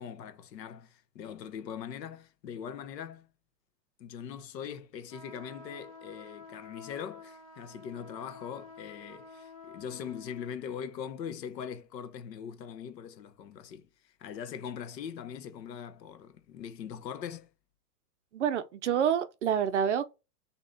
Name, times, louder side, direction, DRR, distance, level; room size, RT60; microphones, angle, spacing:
voice 1, 0.0-3.3 4.0-17.5, left 8 dB, 85° left, 1.0 m, -41 dB
sound 1, 5.1-10.5, left 4 dB, 25° left, 0.4 m, -50 dB
voice 2, 18.3-20.1, right 8 dB, 50° right, 0.5 m, -27 dB
6.7 x 2.9 x 2.7 m
supercardioid pair, 175°, 49 cm